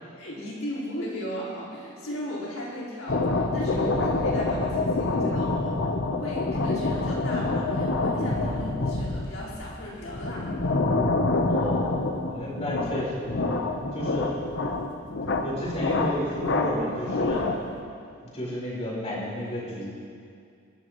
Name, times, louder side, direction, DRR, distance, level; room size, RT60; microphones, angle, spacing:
voice 1, 0.1-5.8 6.2-10.6, equal, 75° left, -7 dB, 4.6 m, -36 dB
sound 1, 3.1-17.8, left 2 dB, 60° left, 1.0 m, -27 dB
voice 2, 11.5-13.3 13.9-14.3 15.3-17.6 18.3-19.9, left 1 dB, 35° left, -5 dB, 4.5 m, -32 dB
23.5 x 13.5 x 3.1 m, 2.3 s
head